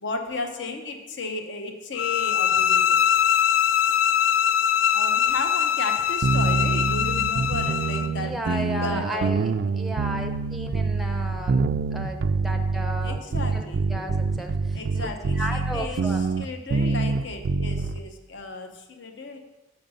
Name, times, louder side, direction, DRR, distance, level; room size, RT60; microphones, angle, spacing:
voice 1, 0.0-3.0 4.9-9.4 13.0-13.8 14.7-19.4, left 3 dB, 60° left, 5 dB, 0.8 m, -34 dB
sound 1, 2.0-8.1, left 9 dB, 85° left, 0.3 m, -22 dB
sound 2, 6.2-18.0, right 4 dB, 55° right, 0.3 m, -25 dB
voice 2, 8.2-11.6 11.9-13.2 13.5-16.2, equal, ahead, 3 dB, 0.5 m, -34 dB
6.9 x 5.2 x 5.4 m, 1.1 s
head